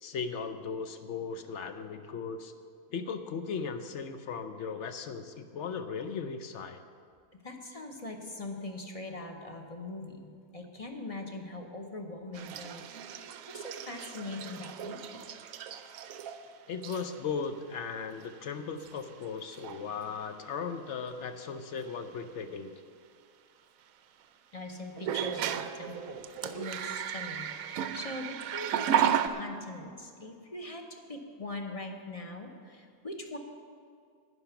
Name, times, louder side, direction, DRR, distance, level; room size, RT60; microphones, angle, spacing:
voice 1, 0.0-2.5 2.9-6.8 16.7-22.7, left 5 dB, 60° left, 9 dB, 0.8 m, -37 dB
voice 2, 7.4-12.8 13.5-15.2 24.5-33.4, left 2 dB, 30° left, 3 dB, 0.7 m, -42 dB
sound 1, 12.3-16.5 16.8-17.2 18.2-18.3 18.8-19.2 19.5-19.8 21.9-22.0 25.0-29.3, right 9 dB, 70° right, 0.9 m, -34 dB
11.0 x 9.8 x 5.8 m, 2.2 s
omnidirectional pair, 1.7 m